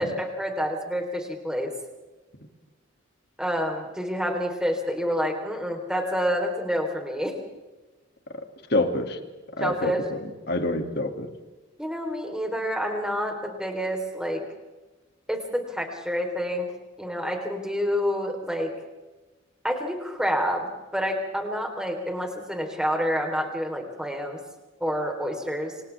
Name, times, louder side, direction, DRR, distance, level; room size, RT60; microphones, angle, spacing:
voice 1, 0.0-1.7 3.4-7.3 9.6-10.0 11.8-14.4 15.3-16.7 17.0-18.7 19.6-24.4 24.8-25.7, equal, 5° right, 2 dB, 3.8 m, -28 dB
voice 2, 8.7-9.2 9.6-11.3, left 2 dB, 55° left, 5 dB, 2.5 m, -27 dB
28.5 x 26.5 x 3.6 m, 1.2 s
head